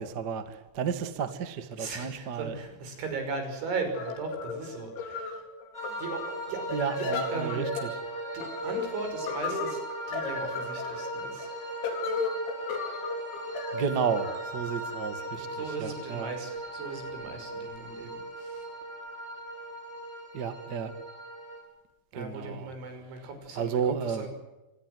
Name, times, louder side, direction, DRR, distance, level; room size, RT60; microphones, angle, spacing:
voice 1, 0.0-2.6 6.7-8.0 13.7-16.3 20.3-20.9 22.1-22.7 23.5-24.3, right 6 dB, 45° right, 9 dB, 1.3 m, -32 dB
voice 2, 1.8-5.4 6.0-6.6 6.9-7.7 8.3-9.8 10.1-11.5 15.5-18.1 18.4-18.7 22.1-24.3, right 4 dB, 85° right, 6 dB, 8.1 m, -37 dB
sound 1, 3.9-15.6, left 5 dB, 80° left, 5.8 m, -36 dB
sound 2, 5.7-21.6, right 2 dB, 5° left, 6.8 m, -38 dB
25.0 x 20.5 x 8.0 m, 1.0 s
omnidirectional pair, 5.3 m